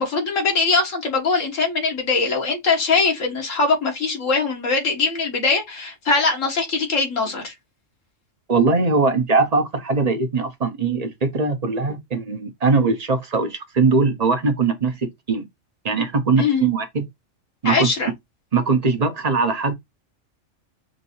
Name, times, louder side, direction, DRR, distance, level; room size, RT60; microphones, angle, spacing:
voice 1, 0.0-7.5 16.4-16.7 17.7-18.1, left 4 dB, 80° left, 1.8 m, -21 dB
voice 2, 8.5-15.5 15.8-17.1 17.6-17.9 18.5-19.7, right 4 dB, 35° right, 0.8 m, -21 dB
6.2 x 2.7 x 2.7 m
omnidirectional pair, 1.3 m